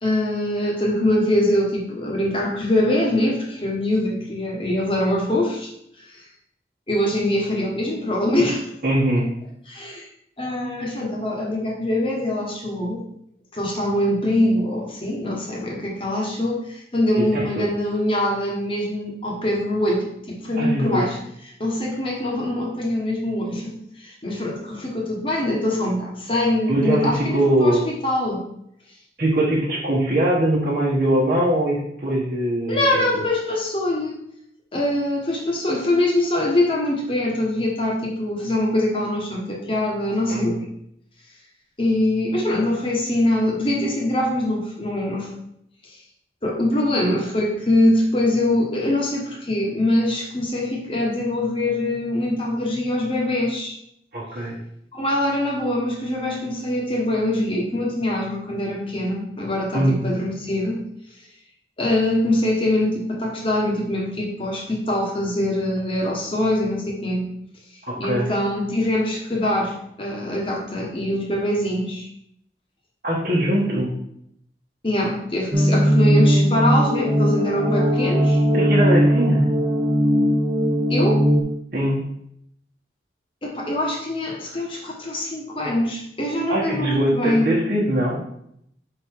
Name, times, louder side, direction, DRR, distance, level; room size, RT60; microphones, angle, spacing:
voice 1, 0.0-5.7 6.1-6.2 6.9-8.7 9.7-10.1 10.4-13.0 13.5-21.2 21.6-28.4 32.7-34.2 34.7-40.6 41.8-45.3 46.4-53.8 54.9-60.8 61.8-67.3 68.0-72.1 74.8-78.4 80.9-81.2 83.4-87.5, left 1 dB, 30° left, -2 dB, 1.3 m, -23 dB
voice 2, 8.8-9.3 17.2-17.7 20.6-21.1 26.7-27.8 29.2-32.8 33.1-33.2 40.3-40.6 54.1-54.6 59.7-60.0 67.9-68.3 73.0-73.9 78.5-79.5 81.7-82.0 86.5-88.3, right 1 dB, 50° right, -8 dB, 1.2 m, -22 dB
sound 1, 75.5-81.4, equal, 25° right, 0.7 m, -18 dB
5.3 x 3.9 x 4.6 m, 0.73 s
head